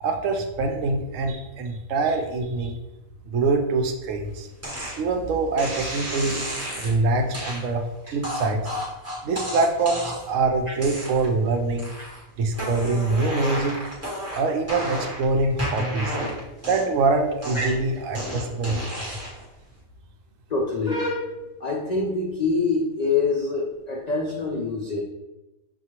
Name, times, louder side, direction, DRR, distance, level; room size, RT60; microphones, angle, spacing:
voice 1, 0.0-2.8 3.2-4.5 5.0-8.7 9.2-12.0 12.4-13.8 14.3-16.2 16.7-19.2, right 3 dB, 70° right, 4 dB, 0.9 m, -24 dB
sound 1, 4.6-5.0 5.6-6.9 7.3-7.6 8.2-10.3 10.8-11.4 11.8-12.2 12.5-15.2 15.6-17.0 17.4-19.4, equal, 10° right, 1.0 m, -32 dB
voice 2, 20.5-21.3 21.6-25.0, left 3 dB, 75° left, -1 dB, 0.3 m, -25 dB
6.2 x 2.4 x 2.9 m, 1.0 s
omnidirectional pair, 1.4 m